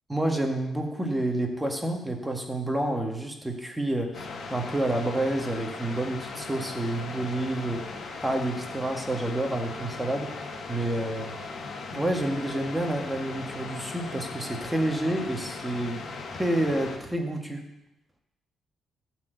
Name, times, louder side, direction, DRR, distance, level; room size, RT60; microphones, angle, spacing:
voice 1, 0.1-7.9 8.2-10.3 10.7-11.3 11.9-16.0 16.3-17.6, right 1 dB, 10° right, 2 dB, 1.7 m, -29 dB
sound 1, 4.1-17.0, left 4 dB, 55° left, 1.6 m, -38 dB
12.0 x 4.6 x 8.0 m, 0.89 s
cardioid pair, 90°, 0 cm